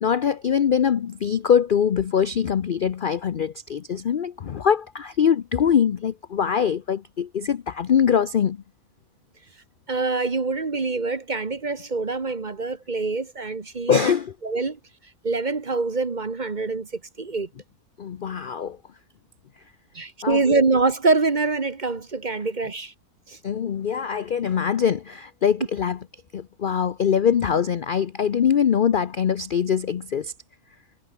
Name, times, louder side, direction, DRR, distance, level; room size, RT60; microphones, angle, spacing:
voice 1, 0.0-8.6 13.9-14.3 18.0-18.8 20.2-20.4 23.4-26.0 26.3-30.3, left 8 dB, 55° left, 0.6 m, -23 dB
voice 2, 9.9-14.1 14.4-14.8 15.2-17.5 19.9-22.9 23.3-23.4, right 3 dB, 35° right, 1.2 m, -25 dB
omnidirectional pair, 1.6 m